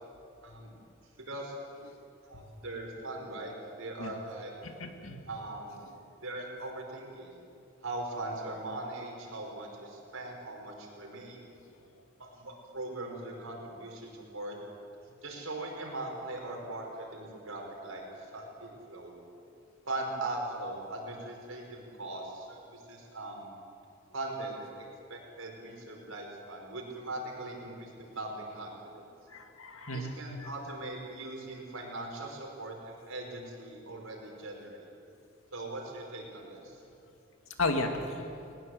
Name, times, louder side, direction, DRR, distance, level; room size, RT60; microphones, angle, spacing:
voice 1, 1.1-1.5 2.2-4.5 5.3-5.8 6.2-7.4 7.8-11.5 12.2-14.6 15.2-19.2 19.8-23.5 24.1-29.1 29.9-34.9 35.5-36.8, right 2 dB, 85° right, 0 dB, 5.1 m, -40 dB
voice 2, 4.6-5.2 29.3-30.1 30.4-30.5 37.6-38.2, left 2 dB, 80° left, 4 dB, 2.3 m, -33 dB
21.0 x 19.5 x 7.9 m, 2.6 s
head